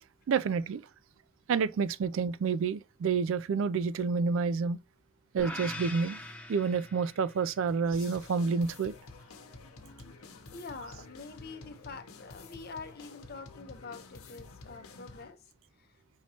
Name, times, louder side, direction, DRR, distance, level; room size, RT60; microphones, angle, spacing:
voice 1, 0.3-0.8 1.5-4.8 5.3-6.2 6.5-8.9, right 5 dB, 65° right, 0.3 m, -29 dB
sound 1, 5.4-7.6, left 2 dB, 5° left, 0.5 m, -42 dB
sound 2, 7.9-15.3, left 3 dB, 85° left, 0.9 m, -50 dB
voice 2, 10.5-15.4 15.8-15.9, left 4 dB, 45° left, 0.7 m, -45 dB
5.6 x 3.0 x 2.8 m
head